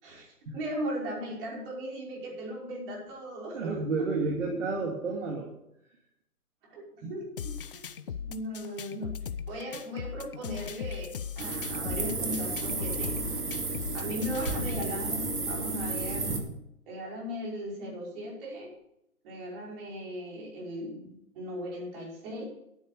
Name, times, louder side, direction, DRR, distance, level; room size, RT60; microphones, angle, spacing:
voice 1, 0.0-4.1 4.4-4.6 6.7-7.4 7.6-7.9 8.3-9.2 9.5-13.4 13.9-16.4 16.9-18.7 19.2-22.4, equal, 35° right, -3 dB, 5.3 m, -37 dB
voice 2, 3.5-5.5, right 4 dB, 50° right, 1 dB, 2.3 m, -30 dB
sound 1, 7.4-14.9, left 7 dB, 40° left, 0.5 m, -39 dB
sound 2, 11.4-16.4, right 3 dB, 85° right, 2.4 m, -32 dB
9.7 x 9.4 x 6.7 m, 0.79 s
hypercardioid pair, 140°, 45 cm